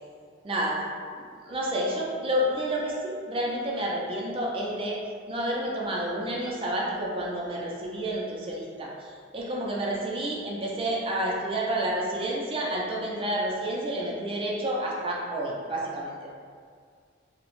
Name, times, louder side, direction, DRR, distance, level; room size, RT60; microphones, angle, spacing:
voice 1, 0.4-0.8 1.5-5.0 5.3-9.1 9.3-16.3, right 1 dB, 30° right, -3 dB, 0.4 m, -29 dB
2.8 x 2.1 x 2.9 m, 2.1 s
head